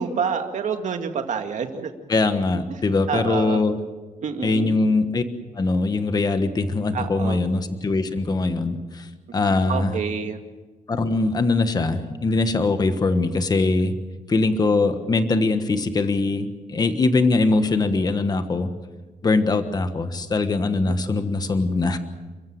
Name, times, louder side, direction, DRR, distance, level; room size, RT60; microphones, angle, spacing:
voice 1, 0.0-1.9 2.7-2.8 3.1-3.6 4.2-4.8 6.9-7.4 9.7-10.4 20.9-21.0, right 6 dB, 65° right, 6 dB, 2.2 m, -27 dB
voice 2, 2.1-3.8 4.4-5.2 5.5-9.1 9.3-9.9 10.9-14.0 14.3-18.7 19.2-22.0, left 3 dB, 30° left, 9 dB, 1.3 m, -22 dB
29.0 x 15.0 x 7.9 m, 1.3 s
wide cardioid pair, 170°, 14 cm